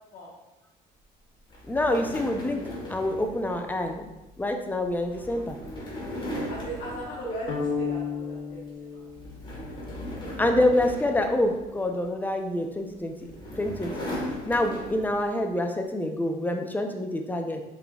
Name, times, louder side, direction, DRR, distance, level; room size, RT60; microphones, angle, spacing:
sound 1, 1.5-8.0 8.4-8.7 9.1-12.1 12.9-15.4, equal, 25° left, 1.5 m, -38 dB
voice 1, 1.7-4.1 4.4-5.6 10.4-13.2 13.6-14.0 14.5-17.6, left 1 dB, 10° left, 4 dB, 0.6 m, -26 dB
voice 2, 6.5-9.1, right 1 dB, 50° left, -7 dB, 1.4 m, -39 dB
sound 2, 7.5-9.8, left 5 dB, 70° left, 0.9 m, -32 dB
5.3 x 3.9 x 2.4 m, 1.0 s
supercardioid pair, 75°, 18 cm